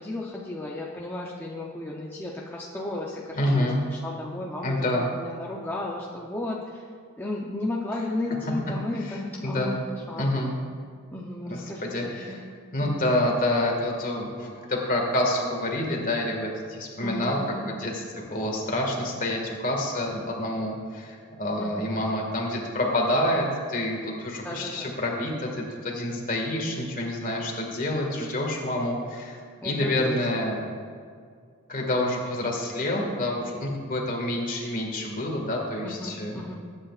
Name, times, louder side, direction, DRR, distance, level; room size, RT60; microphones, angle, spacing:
voice 1, 0.0-6.9 7.2-10.3 11.1-12.4 12.8-13.1 17.0-17.8 21.6-22.0 24.4-24.9 29.6-30.6 35.8-36.5, left 2 dB, 10° left, -4 dB, 0.7 m, -34 dB
voice 2, 3.4-3.8 4.6-5.1 9.1-9.7 10.1-10.5 11.5-12.4 12.7-17.4 17.7-30.6 31.7-36.4, left 1 dB, 40° left, 0 dB, 1.9 m, -28 dB
20.5 x 8.8 x 2.5 m, 2.1 s
head